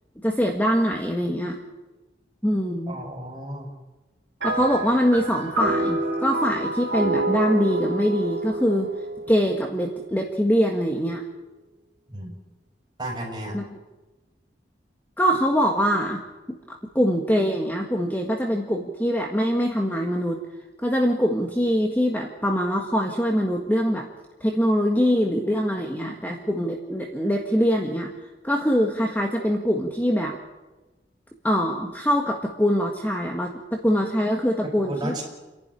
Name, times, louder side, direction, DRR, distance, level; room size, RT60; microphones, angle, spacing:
voice 1, 0.2-1.6 2.4-2.9 4.4-8.9 9.3-11.2 13.5-13.6 15.2-16.2 16.5-20.4 20.8-24.1 24.4-28.1 28.4-30.4 31.4-35.2, equal, 10° left, 1 dB, 1.6 m, -23 dB
voice 2, 2.9-3.7 12.1-12.3 13.0-13.6 34.8-35.2, right 1 dB, 25° right, 0 dB, 6.6 m, -33 dB
sound 1, 4.4-9.9, right 2 dB, 75° right, 3.2 m, -27 dB
29.0 x 11.5 x 10.0 m, 1.1 s
head